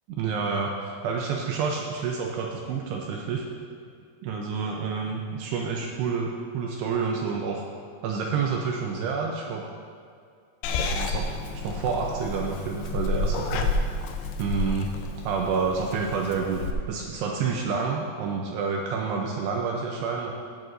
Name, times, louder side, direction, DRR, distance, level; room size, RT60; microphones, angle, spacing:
voice 1, 0.1-3.4 4.2-7.6 8.0-9.6 10.8-13.7 14.4-14.9 15.2-20.3, right 5 dB, 85° right, 0 dB, 2.5 m, -29 dB
Purr / Meow, 10.6-16.7, left 3 dB, 80° left, 2.8 m, -30 dB
16.5 x 9.3 x 2.6 m, 2.3 s
omnidirectional pair, 5.5 m